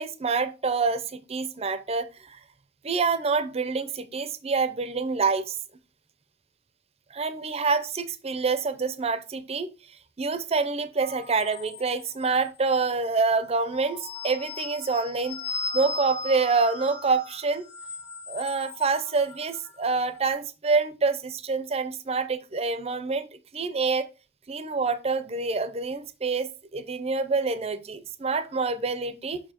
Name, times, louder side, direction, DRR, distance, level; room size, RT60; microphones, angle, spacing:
voice 1, 0.0-2.4 2.8-5.6 7.1-9.7 10.2-15.4 15.7-17.6 18.3-23.3 23.5-24.1 24.5-29.4, right 4 dB, 35° right, 0.6 m, -27 dB
sound 1, 11.0-12.5 13.4-20.0, left 4 dB, 35° left, 1.9 m, -38 dB
6.8 x 5.8 x 2.9 m
head